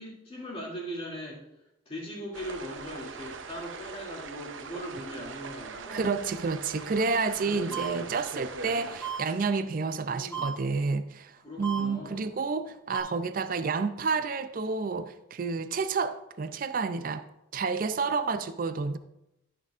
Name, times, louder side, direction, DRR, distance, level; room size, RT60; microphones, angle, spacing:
voice 1, 0.0-1.4 1.9-6.0 7.4-8.2 9.8-10.5 11.4-12.3, equal, 30° left, 2.6 m, -40 dB
sound 1, 2.3-9.7, right 4 dB, 85° right, 0.7 m, -41 dB
voice 2, 5.9-17.2 17.5-19.0, right 4 dB, 45° right, 0.4 m, -30 dB
sound 2, 7.7-7.9 9.0-9.2 10.3-10.5 11.6-11.8 12.9-13.0, right 8 dB, 15° left, 3.0 m, -33 dB
13.5 x 6.6 x 2.5 m
head